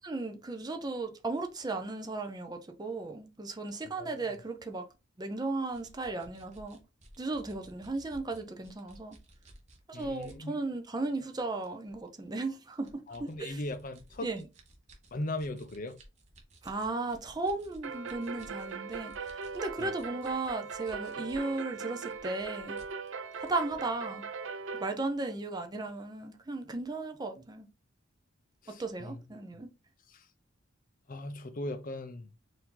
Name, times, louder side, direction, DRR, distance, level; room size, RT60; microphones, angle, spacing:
voice 1, 0.0-4.9 5.2-6.8 7.2-9.2 9.9-13.6 14.2-14.4 16.6-22.8 23.4-24.2 24.8-27.7 28.8-29.7, right 3 dB, 20° right, 0.5 m, -35 dB
voice 2, 3.9-4.3 9.9-10.6 13.1-14.3 15.1-16.0 19.8-19.9 28.6-29.2 30.1-30.3 31.1-32.3, left 1 dB, 45° left, 0.5 m, -39 dB
sound 1, 5.7-10.4 10.9-11.0 11.6-12.1 12.7-21.5 21.8-23.9, right 1 dB, 35° right, 1.1 m, -56 dB
sound 2, 17.8-24.9, right 5 dB, 70° right, 0.5 m, -40 dB
4.6 x 2.7 x 3.8 m
head